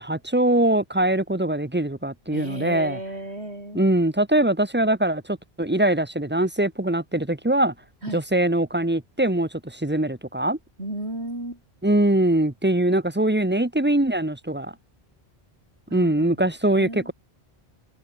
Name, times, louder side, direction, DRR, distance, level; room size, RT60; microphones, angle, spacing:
voice 1, 0.0-3.0 3.7-7.7 8.1-10.6 11.8-14.7 15.9-17.0, right 1 dB, 10° right, 1.2 m, -22 dB
voice 2, 2.3-3.8 8.0-8.2 10.8-11.6 15.9-17.1, right 1 dB, 80° right, 8.1 m, -34 dB
omnidirectional pair, 1.1 m